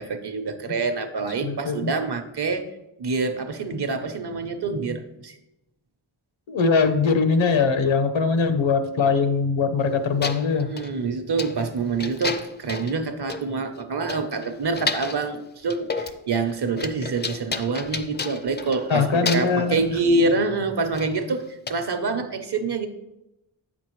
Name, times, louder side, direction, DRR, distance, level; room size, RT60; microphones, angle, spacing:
voice 1, 0.0-2.7 3.0-5.4 10.5-22.9, right 3 dB, 60° right, 7 dB, 0.8 m, -26 dB
voice 2, 1.4-1.9 6.5-10.7 18.9-19.8 20.1-20.2, left 5 dB, 80° left, 9 dB, 0.8 m, -21 dB
sound 1, 9.8-9.9 10.2-10.9 11.4-11.7 12.0-13.0 13.3-13.4 13.8-13.9 14.1-15.2 15.7-16.2 16.5-18.9 19.2-19.6 20.9-21.1 21.7-21.8, left 4 dB, 25° left, 0.4 m, -31 dB
8.1 x 6.1 x 3.0 m, 0.91 s
wide cardioid pair, 105°, 46 cm